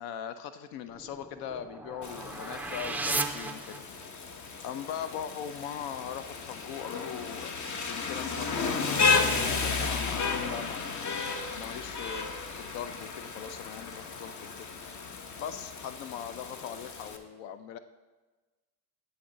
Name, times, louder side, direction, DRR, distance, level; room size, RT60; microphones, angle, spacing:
voice 1, 0.0-3.8 4.6-7.5 7.9-10.9 11.5-14.7 15.4-17.8, left 9 dB, 70° left, 11 dB, 0.6 m, -40 dB
sound 1, 0.9-4.3, right 2 dB, 5° right, 0.3 m, -36 dB
Rain, 2.0-17.2, left 4 dB, 40° left, 0.9 m, -33 dB
12.5 x 4.3 x 3.9 m, 1.2 s
hypercardioid pair, 70°, 46 cm